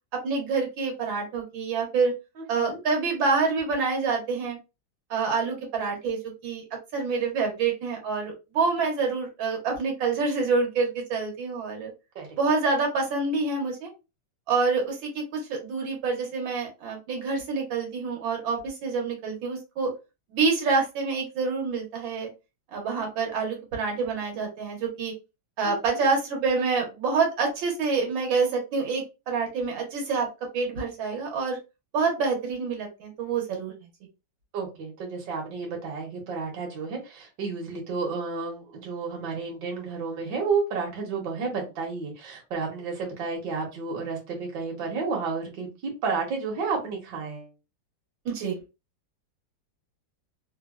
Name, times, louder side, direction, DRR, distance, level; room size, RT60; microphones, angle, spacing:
voice 1, 0.2-2.1 2.5-4.6 5.1-6.7 6.9-11.9 12.4-13.9 14.5-19.9 20.3-22.3 22.7-25.1 25.6-30.3 30.5-31.6 31.9-33.7 48.3-48.6, right 4 dB, 90° right, 0 dB, 1.7 m, -27 dB
voice 2, 2.4-2.8 12.1-12.4 25.6-26.0 34.5-47.5, right 4 dB, 70° right, 0 dB, 1.5 m, -31 dB
3.7 x 2.1 x 2.3 m, 0.27 s
omnidirectional pair, 2.0 m